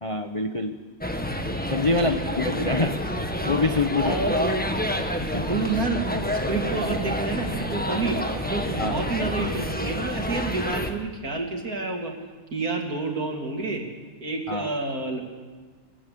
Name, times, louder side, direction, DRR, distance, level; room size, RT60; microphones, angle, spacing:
voice 1, 0.0-0.8 1.7-3.0 3.4-4.3 5.2-5.6 8.8-9.0 14.5-14.7, left 2 dB, 30° left, 5 dB, 0.6 m, -25 dB
sound 1, 1.0-10.9, equal, 5° left, 1.2 m, -28 dB
voice 2, 1.9-2.6 4.0-4.8 5.4-12.1 12.5-13.9 14.2-15.2, right 3 dB, 45° right, 2 dB, 3.3 m, -29 dB
26.5 x 13.5 x 8.7 m, 1.4 s
omnidirectional pair, 2.1 m